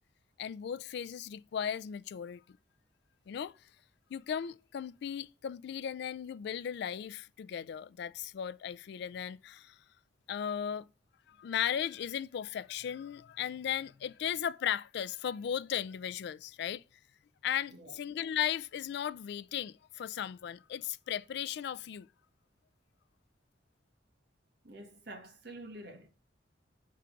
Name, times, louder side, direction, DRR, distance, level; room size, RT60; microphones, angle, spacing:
voice 1, 0.4-2.4 3.3-3.5 4.1-9.8 10.3-10.9 11.3-16.8 17.4-22.1, left 9 dB, 65° left, 0.3 m, -36 dB
voice 2, 24.6-26.1, right 1 dB, 60° right, 1.4 m, -48 dB
5.8 x 3.7 x 5.8 m
head